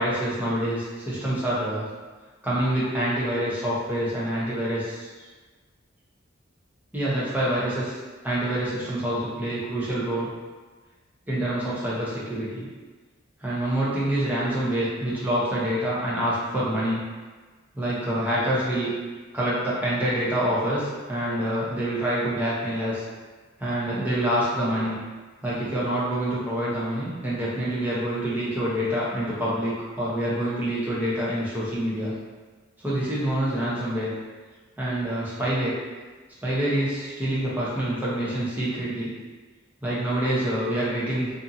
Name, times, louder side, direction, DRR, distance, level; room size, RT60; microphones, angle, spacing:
voice 1, 0.0-1.8 2.4-5.1 6.9-7.9 8.2-10.3 11.3-12.7 13.4-17.0 17.7-18.9 19.3-23.0 23.6-25.0 25.4-32.1 32.8-34.1 34.8-35.7 36.4-39.1 39.8-41.3, right 1 dB, 10° right, -8 dB, 0.7 m, -26 dB
2.6 x 2.5 x 2.6 m, 1.4 s
head